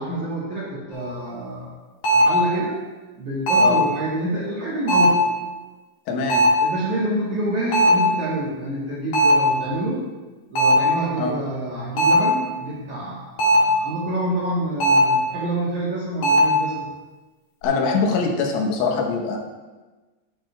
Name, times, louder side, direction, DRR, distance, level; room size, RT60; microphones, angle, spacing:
voice 1, 0.0-1.7 2.1-2.8 3.2-5.3 6.6-10.0 10.5-16.9, right 1 dB, 75° right, -6 dB, 1.7 m, -27 dB
sound 1, 0.9-1.0 2.0-2.4 3.5-3.8 4.9-5.3 6.3-6.7 7.7-8.1 9.1-9.5 10.6-10.9 12.0-12.3 13.4-13.8 14.8-15.2 16.2-16.6, equal, 55° left, 2.3 m, -17 dB
voice 2, 6.1-6.6 11.2-11.3 17.6-19.4, left 4 dB, 85° left, 0 dB, 3.5 m, -23 dB
12.0 x 8.4 x 2.3 m, 1.3 s
omnidirectional pair, 5.4 m